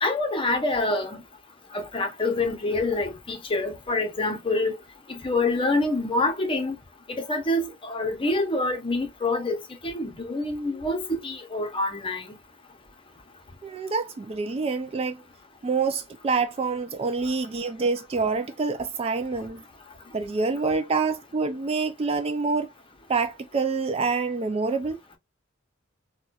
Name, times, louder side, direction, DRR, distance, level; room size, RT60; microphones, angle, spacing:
voice 1, 0.0-1.2 1.7-4.7 5.1-6.8 7.1-12.3, left 2 dB, 25° left, 0.7 m, -26 dB
voice 2, 13.6-15.2 15.6-19.6 20.1-22.7 23.1-25.0, right 4 dB, 30° right, 0.3 m, -26 dB
4.2 x 2.2 x 2.3 m
head